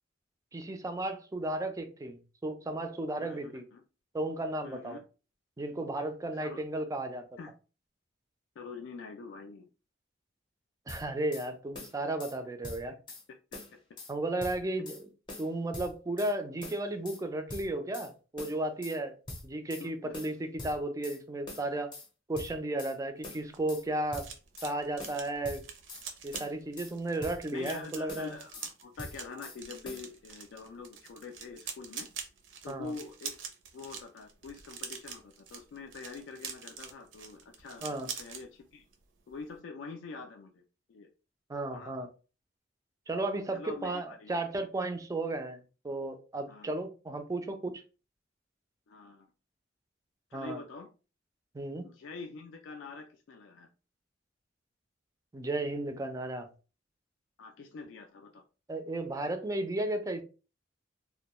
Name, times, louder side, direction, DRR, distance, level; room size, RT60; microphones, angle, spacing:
voice 1, 0.5-3.6 4.1-5.0 5.6-7.3 10.9-12.9 14.1-15.0 15.4-19.1 19.4-21.9 22.3-24.3 24.6-25.6 26.2-28.3 32.7-32.9 37.8-38.1 41.5-42.1 43.1-47.8 50.3-50.6 51.5-51.8 55.3-56.5 58.7-60.2, right 2 dB, 20° right, 0.3 m, -34 dB
voice 2, 3.2-3.8 4.6-5.0 6.4-6.6 7.4-7.5 8.6-9.7 19.8-20.1 27.5-32.1 32.6-33.3 33.7-38.8 39.3-40.6 40.9-41.1 41.7-42.1 43.5-44.3 46.5-46.7 48.9-49.3 50.3-50.9 51.8-53.7 57.4-58.4, left 4 dB, 75° left, 0.3 m, -45 dB
sound 1, 10.9-11.5 11.8-12.4 12.6-13.2 13.5-14.1 14.4-15.0 15.3-16.3 16.6-17.2 17.5-18.1 18.4-19.0 19.3-19.9 20.1-21.2 21.5-22.1 22.4-23.0 23.2-23.8 24.1-24.7 25.0-26.1 26.3-26.9 27.2-27.8 28.1-28.7 29.0-29.6 29.9-30.1, left 2 dB, 25° left, 0.6 m, -44 dB
sound 2, 23.2-38.4 38.8-39.0 39.3-39.6, right 6 dB, 75° right, 0.5 m, -45 dB
2.2 x 2.1 x 2.9 m
head